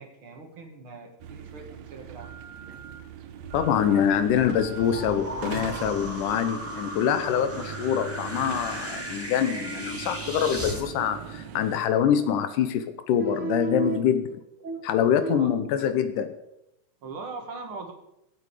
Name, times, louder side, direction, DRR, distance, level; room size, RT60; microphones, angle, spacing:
voice 1, 0.0-2.4 4.0-4.2 13.2-14.0 14.6-15.6 17.0-17.9, right 5 dB, 45° right, 4 dB, 2.2 m, -35 dB
sound 1, 1.2-11.8, right 7 dB, 65° right, 2.0 m, -40 dB
sound 2, 3.4-10.8, right 1 dB, 5° right, 1.7 m, -37 dB
voice 2, 3.5-14.2 14.9-16.4, left 9 dB, 85° left, 10 dB, 2.4 m, -25 dB
23.5 x 8.5 x 4.9 m, 0.84 s
omnidirectional pair, 3.7 m